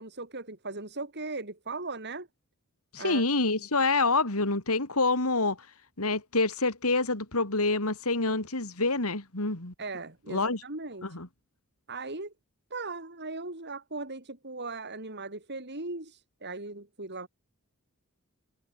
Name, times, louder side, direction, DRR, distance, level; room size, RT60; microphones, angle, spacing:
voice 1, 0.0-2.3 3.0-3.2 9.8-11.2 11.9-12.3 12.7-17.3, right 3 dB, 50° right, 5.5 m, -38 dB
voice 2, 2.9-5.6 6.0-9.7 10.3-10.6 11.0-11.3, left 3 dB, 80° left, 4.0 m, -27 dB
head